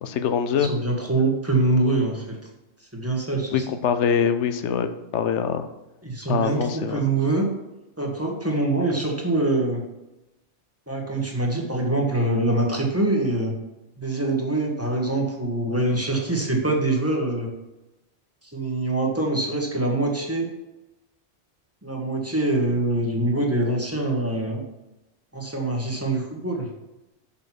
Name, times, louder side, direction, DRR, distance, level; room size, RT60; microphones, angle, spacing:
voice 1, 0.0-0.7 3.5-5.7 6.3-7.1, left 7 dB, 85° left, 9 dB, 1.0 m, -24 dB
voice 2, 0.6-2.4 2.9-3.7 6.0-7.4 8.0-9.8 10.9-13.5 14.0-17.5 18.5-20.5 21.8-24.6 25.3-26.7, right 2 dB, 10° right, 0 dB, 1.5 m, -24 dB
6.4 x 5.7 x 6.1 m, 0.99 s
omnidirectional pair, 1.2 m